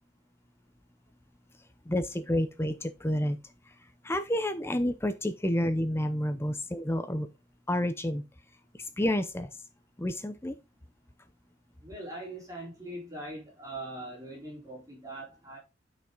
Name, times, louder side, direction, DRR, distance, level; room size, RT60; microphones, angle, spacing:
voice 1, 1.9-3.4 4.0-7.3 7.7-8.2 9.0-9.5 10.0-10.5, left 1 dB, 15° left, 0.6 m, -29 dB
voice 2, 11.8-15.6, right 1 dB, 20° right, 3.7 m, -41 dB
9.1 x 5.5 x 3.8 m
head